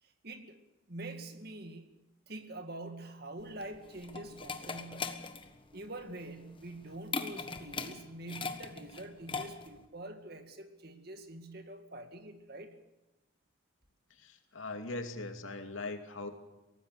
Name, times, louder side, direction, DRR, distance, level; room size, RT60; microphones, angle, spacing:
voice 1, 0.0-0.6 0.9-1.9 2.3-5.2 5.7-12.7, right 2 dB, 50° right, 7 dB, 2.2 m, -45 dB
sound 1, 3.4-9.9, left 5 dB, 25° left, 1.3 m, -40 dB
voice 2, 14.1-16.3, left 2 dB, 80° left, 5 dB, 2.7 m, -40 dB
23.5 x 18.5 x 6.8 m, 1.0 s
head